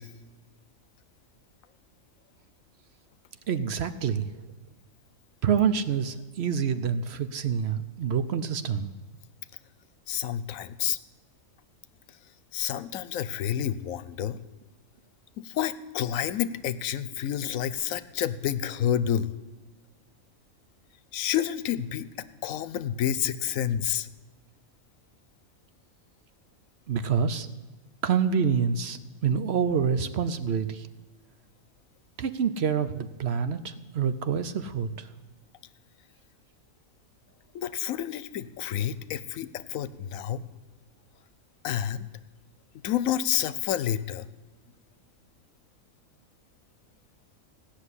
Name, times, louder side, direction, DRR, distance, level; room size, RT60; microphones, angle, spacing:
voice 1, 3.5-4.3 5.4-8.9 26.9-27.5 28.0-30.9 32.2-35.1, right 7 dB, 60° right, 11 dB, 0.9 m, -27 dB
voice 2, 10.1-11.0 12.5-14.4 15.4-19.3 21.1-24.1 37.5-40.4 41.6-42.1 42.8-44.3, left 10 dB, 85° left, 16 dB, 1.1 m, -29 dB
16.0 x 6.5 x 9.7 m, 1.2 s
omnidirectional pair, 1.4 m